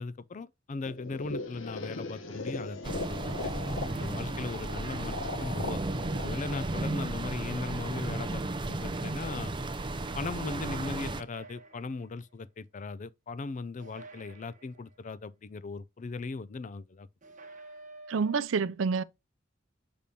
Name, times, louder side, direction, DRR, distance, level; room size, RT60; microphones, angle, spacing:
voice 1, 0.0-3.5 4.0-5.8 6.2-9.5 10.1-17.1, left 3 dB, 40° left, 0.4 m, -38 dB
sound 1, 0.9-7.7, left 3 dB, 80° left, 1.1 m, -40 dB
sound 2, 2.8-11.2, right 2 dB, 25° right, 0.5 m, -34 dB
sound 3, 3.7-4.9 6.3-7.5 8.8-9.8 11.1-12.3 13.8-15.1 17.2-18.4, right 3 dB, 40° right, 1.1 m, -52 dB
voice 2, 18.1-19.0, right 5 dB, 75° right, 0.5 m, -28 dB
6.8 x 5.2 x 2.8 m
head